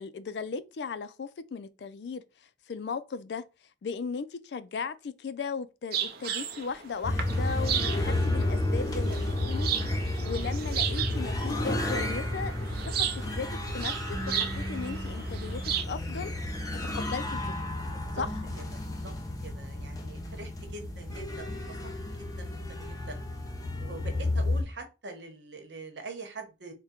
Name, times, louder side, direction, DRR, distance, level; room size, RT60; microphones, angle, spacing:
voice 1, 0.0-2.2 2.7-3.5 3.8-9.9 10.2-12.7 13.0-13.5 13.7-16.3 16.9-17.4 18.1-18.3, left 5 dB, 70° left, 0.4 m, -36 dB
sound 1, 5.9-15.8, right 9 dB, 55° right, 0.6 m, -35 dB
sound 2, 7.0-24.6, left 1 dB, 20° left, 0.6 m, -32 dB
voice 2, 17.9-18.3 18.6-18.7 19.0-19.1 19.4-21.8 22.1-23.1 23.8-26.7, right 3 dB, 85° right, 1.0 m, -44 dB
3.6 x 2.2 x 4.3 m
head